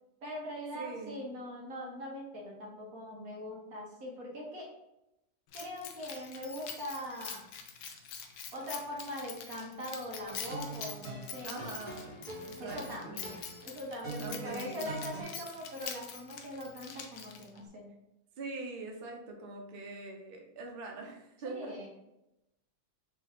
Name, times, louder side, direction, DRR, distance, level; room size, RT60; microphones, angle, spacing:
voice 1, 0.2-4.7 5.5-7.4 8.5-11.5 12.6-13.3 13.6-17.9 21.4-21.9, equal, 55° right, -3 dB, 1.4 m, -41 dB
voice 2, 0.7-1.2 11.4-13.2 14.2-14.9 18.4-21.7, right 3 dB, 75° right, 1 dB, 0.5 m, -43 dB
Keys jangling, 5.5-17.6, left 7 dB, 70° left, 0.9 m, -45 dB
sound 1, 10.2-15.2, right 3 dB, 15° right, 1.3 m, -44 dB
4.5 x 2.8 x 3.5 m, 0.88 s
omnidirectional pair, 2.0 m